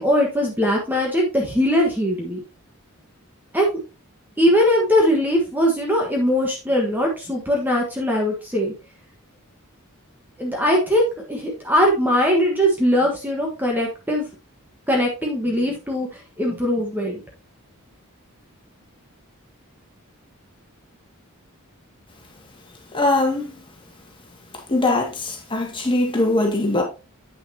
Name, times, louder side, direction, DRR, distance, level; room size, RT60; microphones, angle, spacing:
voice 1, 0.0-2.4 3.5-3.7 4.4-8.7 10.4-14.3 14.9-16.1 16.4-17.2, equal, 10° right, 1.4 m, -20 dB
voice 2, 22.9-23.5 24.7-26.8, left 2 dB, 25° left, 2.0 m, -21 dB
8.4 x 6.5 x 2.9 m
head